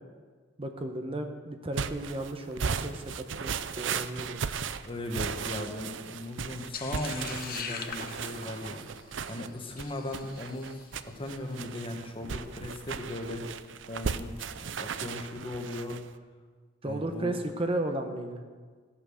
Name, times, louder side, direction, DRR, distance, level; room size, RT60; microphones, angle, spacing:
voice 1, 0.6-4.5 16.8-18.4, right 1 dB, 30° right, 5 dB, 1.0 m, -34 dB
sound 1, 1.7-16.1, right 6 dB, 70° right, 0.6 m, -36 dB
voice 2, 4.8-8.9 9.3-10.8 11.0-13.5 13.9-14.4 14.8-16.0 16.8-17.3, left 1 dB, 25° left, 3 dB, 1.5 m, -37 dB
sound 2, 6.7-11.0, left 6 dB, 50° left, 1.1 m, -41 dB
15.5 x 8.6 x 6.5 m, 1.5 s
head